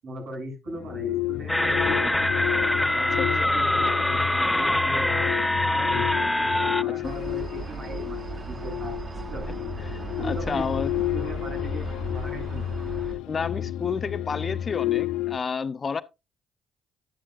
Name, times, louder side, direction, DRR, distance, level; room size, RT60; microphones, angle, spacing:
voice 1, 0.0-2.3 2.9-5.4 5.6-6.1 6.8-9.0 9.3-9.4 10.2-10.6 11.1-12.8, right 1 dB, 65° right, 7.5 m, -38 dB
sound 1, 0.7-15.4, left 13 dB, 75° left, 0.4 m, -31 dB
so long, 1.5-6.8, left 1 dB, 10° left, 0.4 m, -24 dB
voice 2, 3.0-3.5 6.8-7.1 9.8-10.9 13.3-16.0, left 5 dB, 45° left, 0.7 m, -31 dB
sound 2, 7.0-13.1, right 4 dB, 40° right, 1.4 m, -37 dB
11.0 x 10.0 x 2.5 m
hypercardioid pair, 45°, 0 cm